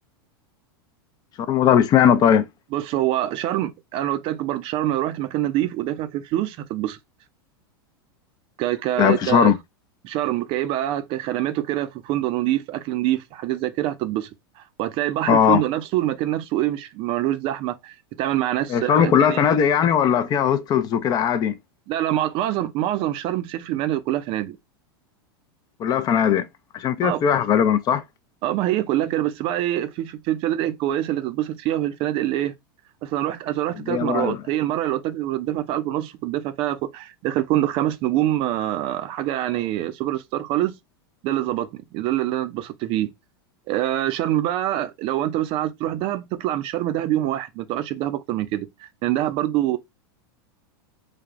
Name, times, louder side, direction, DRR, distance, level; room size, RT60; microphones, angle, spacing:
voice 1, 1.5-2.5 9.0-9.6 15.3-15.6 18.7-21.6 25.8-26.5 26.7-28.0 33.9-34.4, left 8 dB, 30° left, 0.4 m, -19 dB
voice 2, 2.7-7.0 8.6-9.5 10.0-14.3 14.6-19.4 21.9-24.6 27.0-27.2 28.4-32.5 33.0-40.7 41.2-43.1 43.7-49.8, right 13 dB, 45° right, 0.4 m, -25 dB
3.2 x 2.1 x 2.4 m
hypercardioid pair, 110°, 13 cm